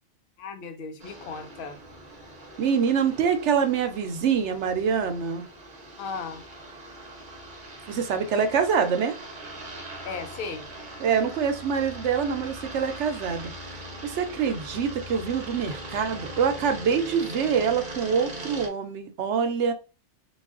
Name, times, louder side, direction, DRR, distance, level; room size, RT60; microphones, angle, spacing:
voice 1, 0.4-1.8 6.0-6.4 10.0-10.7, left 5 dB, 55° left, 0.8 m, -36 dB
sound 1, 1.0-18.7, right 1 dB, 45° right, 0.9 m, -41 dB
voice 2, 2.6-5.4 7.9-9.2 11.0-13.5 14.0-19.7, right 6 dB, 75° right, 1.0 m, -25 dB
3.8 x 2.4 x 3.6 m
omnidirectional pair, 1.2 m